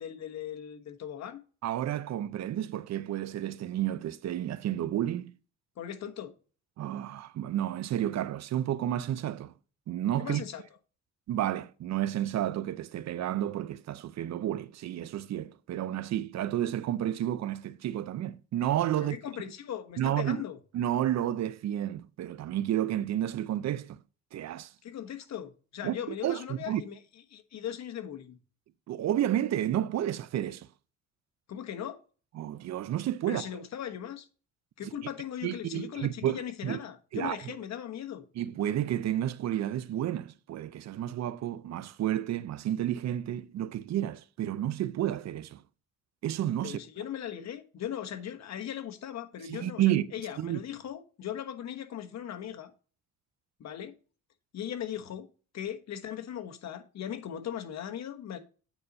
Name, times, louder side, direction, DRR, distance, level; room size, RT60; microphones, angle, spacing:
voice 1, 0.0-1.4 5.8-6.3 10.2-10.6 19.0-20.6 24.8-27.0 27.3-28.4 31.5-32.0 33.3-34.3 34.8-38.2 46.6-52.7 53.6-53.9 54.5-55.3 55.5-58.4, left 9 dB, 60° left, 1.3 m, -38 dB
voice 2, 1.6-5.3 6.8-9.5 9.9-10.5 11.3-19.2 20.0-20.4 20.7-24.0 24.3-24.7 25.8-26.0 26.2-26.8 28.9-30.7 32.4-33.5 34.8-34.9 35.4-36.8 37.1-37.5 38.4-45.6 46.2-46.8 49.5-50.1 50.4-50.6, right 12 dB, 60° right, 0.6 m, -31 dB
9.0 x 4.2 x 5.2 m
cardioid pair, 90°, 30 cm